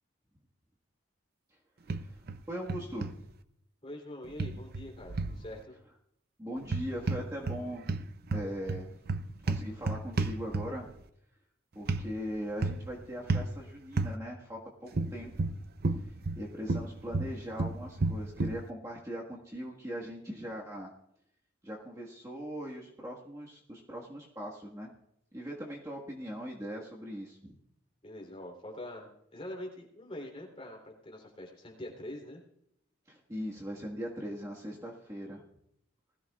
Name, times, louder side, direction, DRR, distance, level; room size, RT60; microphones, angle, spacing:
sound 1, 1.9-2.4 2.7-3.1 4.4-5.4 6.6-7.6 7.9-10.9 11.9-12.1 12.6-12.9 13.3-13.5 14.0-14.1 14.9-16.4 16.7-18.6, right 3 dB, 50° right, 0.6 m, -31 dB
voice 1, 2.5-3.3 6.4-7.8 8.3-8.9 9.5-10.8 11.7-15.3 16.0-20.9 21.6-24.9 25.3-27.6 33.1-35.4, equal, 15° right, -3 dB, 1.6 m, -40 dB
voice 2, 3.8-5.8 28.0-32.4, left 1 dB, 30° left, 0 dB, 3.2 m, -44 dB
20.0 x 14.0 x 2.4 m, 0.75 s
head